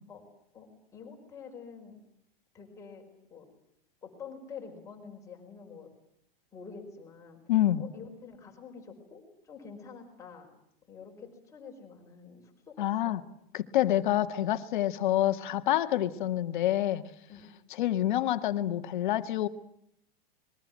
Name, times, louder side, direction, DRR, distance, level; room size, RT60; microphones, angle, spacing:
voice 1, 0.5-1.9 2.5-3.0 3.3-3.5 4.0-5.9 6.5-7.4 7.8-10.5 10.9-13.1 17.3-17.6, left 5 dB, 10° left, 0 dB, 5.0 m, -47 dB
voice 2, 7.5-7.8 12.8-13.2 13.5-17.0 17.8-19.5, left 13 dB, 55° left, 9 dB, 1.8 m, -27 dB
29.0 x 22.0 x 7.5 m, 0.74 s
supercardioid pair, 170°, 30 cm